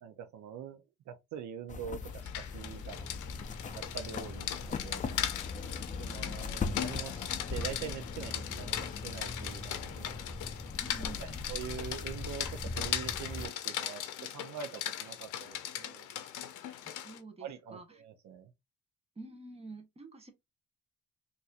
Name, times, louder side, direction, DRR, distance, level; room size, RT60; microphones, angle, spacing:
voice 1, 0.0-3.1 3.7-5.3 6.0-10.3 11.2-16.1 17.4-18.5, right 8 dB, 70° right, 0.6 m, -44 dB
sound 1, 1.7-13.5, left 4 dB, 25° left, 0.4 m, -40 dB
Rain, 2.1-17.2, left 11 dB, 80° left, 0.6 m, -39 dB
voice 2, 10.8-11.4 16.8-17.8 19.2-20.3, right 3 dB, 20° right, 1.0 m, -48 dB
4.1 x 2.6 x 2.4 m
cardioid pair, 90°, 30 cm